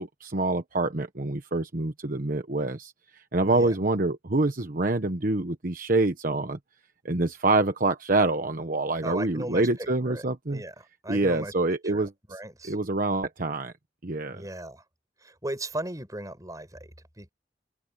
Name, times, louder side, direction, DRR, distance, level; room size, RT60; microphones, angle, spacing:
voice 1, 0.0-6.6 7.0-10.6 11.1-12.4 12.6-13.7 14.0-14.4, right 2 dB, 50° right, 1.2 m, -26 dB
voice 2, 3.4-3.7 9.0-10.2 10.5-11.5 11.8-12.1 12.3-12.7 14.3-14.8 15.2-17.3, right 1 dB, 20° right, 6.0 m, -37 dB
head